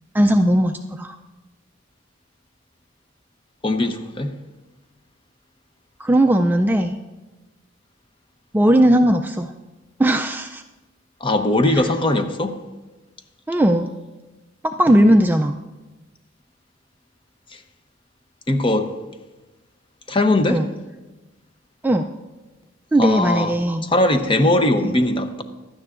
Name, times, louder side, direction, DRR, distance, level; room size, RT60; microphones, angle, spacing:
voice 1, 0.1-1.2 6.0-7.0 8.5-9.5 10.0-10.6 11.7-11.9 13.5-13.9 14.6-15.6 20.5-20.7 21.8-22.1 22.9-23.9 24.8-25.0, right 1 dB, 10° right, 0.3 m, -18 dB
voice 2, 3.6-4.3 11.2-12.6 18.5-18.9 20.1-20.6 23.0-23.5 23.8-25.4, left 1 dB, 25° left, 0.8 m, -19 dB
16.5 x 11.5 x 2.5 m
head